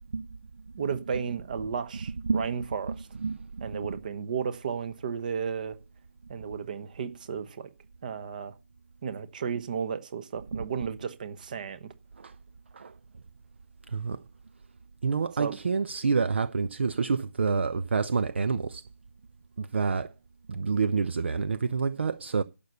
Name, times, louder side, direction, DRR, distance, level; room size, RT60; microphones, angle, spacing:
voice 1, 0.8-3.1 3.6-5.8 6.3-7.7 8.0-8.5 9.0-11.9 15.4-15.6, right 6 dB, 35° right, 1.0 m, -33 dB
voice 2, 3.2-3.7 10.5-10.7 12.2-12.3 12.7-12.9 13.9-14.2 15.0-18.8 19.6-20.1 20.5-22.4, right 5 dB, 50° right, 0.5 m, -28 dB
11.5 x 7.0 x 6.9 m
figure-of-eight pair, 150°, 8 cm